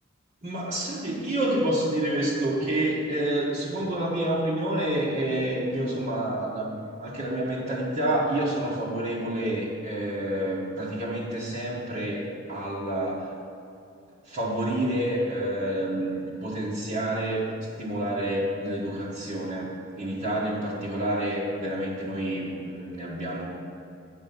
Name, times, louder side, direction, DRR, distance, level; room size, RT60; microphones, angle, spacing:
voice 1, 0.4-13.3 14.2-23.5, right 1 dB, 40° right, -8 dB, 1.5 m, -28 dB
9.3 x 5.0 x 7.0 m, 2.6 s
head